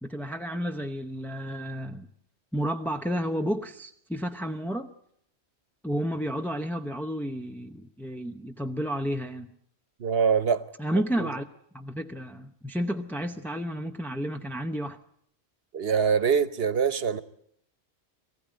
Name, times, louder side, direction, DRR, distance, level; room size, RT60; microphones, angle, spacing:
voice 1, 0.0-2.1 2.5-4.9 5.8-9.5 10.8-11.5 11.7-15.0, equal, ahead, 0.7 m, -31 dB
voice 2, 10.0-10.6 10.9-11.3 15.7-17.2, right 6 dB, 65° right, 1.2 m, -24 dB
22.5 x 15.5 x 9.0 m
omnidirectional pair, 1.1 m